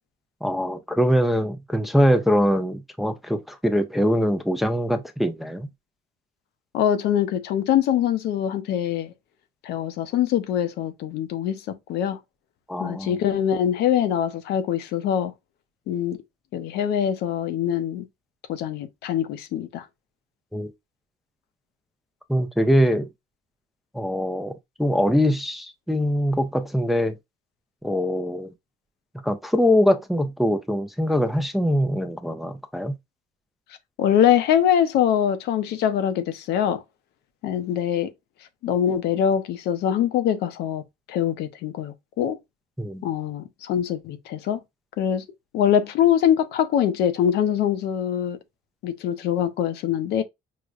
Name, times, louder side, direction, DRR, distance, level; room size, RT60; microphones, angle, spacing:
voice 1, 0.4-5.7 12.7-13.2 20.5-20.7 22.3-23.1 23.9-27.2 27.8-28.5 29.2-32.9 42.8-43.1, equal, ahead, 0.4 m, -23 dB
voice 2, 6.7-9.1 9.6-12.2 12.8-15.3 15.9-16.2 16.5-18.1 18.5-19.8 34.0-36.8 37.4-38.1 38.6-40.8 41.1-42.4 43.0-44.6 45.0-45.2 45.5-48.4 48.8-50.2, left 9 dB, 80° left, 0.6 m, -23 dB
4.7 x 2.1 x 2.4 m
cardioid pair, 110°, 17 cm